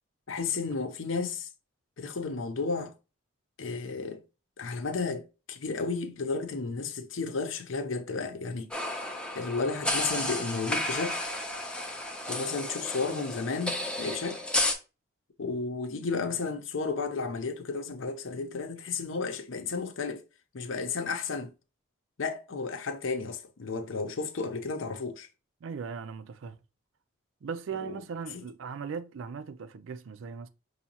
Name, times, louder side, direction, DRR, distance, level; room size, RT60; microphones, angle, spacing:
voice 1, 0.3-1.5 2.0-2.9 3.6-4.2 4.6-8.7 9.4-11.2 12.3-14.4 15.4-20.2 20.5-21.5 22.2-25.3 27.8-28.0, left 4 dB, 75° left, 0.7 m, -33 dB
sound 1, 8.7-14.7, left 1 dB, 5° left, 0.5 m, -32 dB
voice 2, 25.6-26.6 27.4-30.5, right 6 dB, 75° right, 0.4 m, -38 dB
5.5 x 2.7 x 2.8 m
head